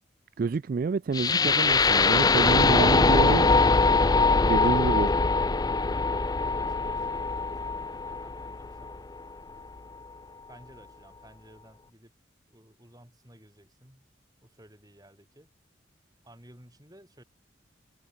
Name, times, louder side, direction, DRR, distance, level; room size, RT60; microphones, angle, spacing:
voice 1, 0.4-3.5 4.4-5.1, right 4 dB, 45° right, 0.3 m, -28 dB
sound 1, 1.1-9.2, left 3 dB, 20° left, 0.4 m, -22 dB
voice 2, 4.5-9.0 10.5-12.1 12.5-14.1 14.4-15.5 16.2-17.2, right 1 dB, 20° right, 6.1 m, -54 dB
head